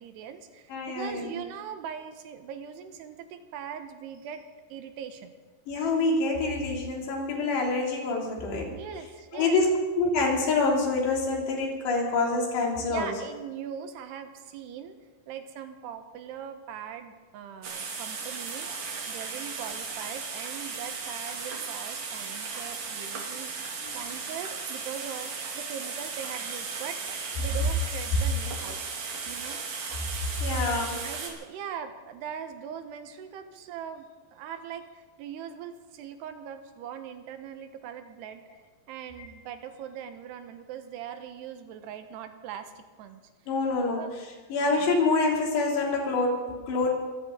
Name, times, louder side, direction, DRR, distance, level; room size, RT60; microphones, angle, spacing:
voice 1, 0.0-4.4 4.7-5.3 8.6-9.6 12.8-15.0 15.3-18.7 19.1-28.8 29.3-29.6 31.0-38.4 38.9-43.2 44.0-44.1, right 8 dB, 85° right, 8 dB, 3.1 m, -41 dB
voice 2, 0.7-1.4 5.7-8.7 9.3-9.7 10.0-13.1 23.8-24.0 30.4-31.0 39.2-39.3 43.5-44.0 44.5-47.0, left 3 dB, 90° left, -1 dB, 5.1 m, -26 dB
sound 1, 17.6-31.3, right 5 dB, 65° right, 4.0 m, -36 dB
23.0 x 16.0 x 3.8 m, 1.3 s
omnidirectional pair, 4.8 m